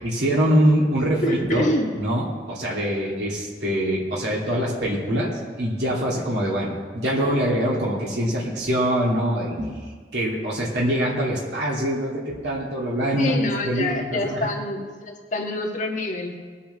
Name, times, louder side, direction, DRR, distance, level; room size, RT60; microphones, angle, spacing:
voice 1, 0.1-1.7 2.0-5.3 5.6-9.7 10.1-14.6, equal, 75° right, -5 dB, 2.9 m, -24 dB
voice 2, 1.2-1.9 13.2-16.4, left 1 dB, 45° left, 0 dB, 1.5 m, -26 dB
20.5 x 8.4 x 3.5 m, 1.5 s
head